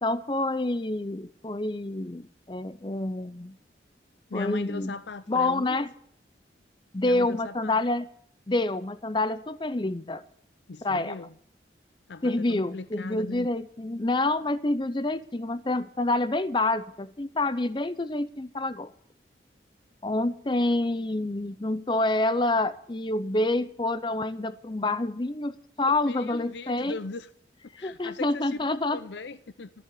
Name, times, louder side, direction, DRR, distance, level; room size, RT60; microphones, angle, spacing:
voice 1, 0.0-3.6 4.3-4.9 5.3-5.9 6.9-8.1 8.5-10.2 10.8-11.2 12.2-18.9 20.0-27.0 27.7-29.0, left 2 dB, 25° left, 0.6 m, -27 dB
voice 2, 4.3-5.9 7.0-7.8 10.7-11.3 12.1-13.5 25.8-27.3 27.8-28.6 28.9-29.7, left 3 dB, 80° left, 0.6 m, -39 dB
14.5 x 7.1 x 9.9 m
head